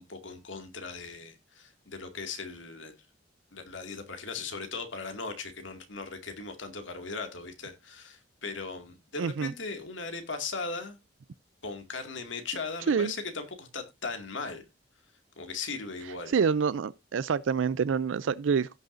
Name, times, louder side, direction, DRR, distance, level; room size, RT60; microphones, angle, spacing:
voice 1, 0.0-2.9 3.5-11.0 11.6-14.6 15.4-16.3, left 4 dB, 80° left, 2.2 m, -38 dB
voice 2, 9.2-9.5 12.9-13.1 16.3-18.7, right 6 dB, 80° right, 0.4 m, -27 dB
16.5 x 6.4 x 2.6 m
head